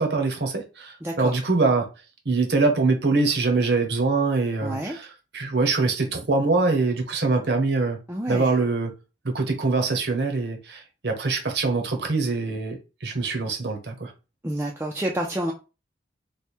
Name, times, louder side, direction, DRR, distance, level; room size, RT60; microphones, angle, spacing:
voice 1, 0.0-1.9 2.2-8.0 8.3-8.9 9.2-14.1, right 3 dB, 65° right, 0.9 m, -24 dB
voice 2, 1.0-1.3 4.6-5.0 8.1-8.6 14.4-15.5, right 1 dB, 10° right, 0.4 m, -29 dB
3.3 x 2.2 x 4.3 m
head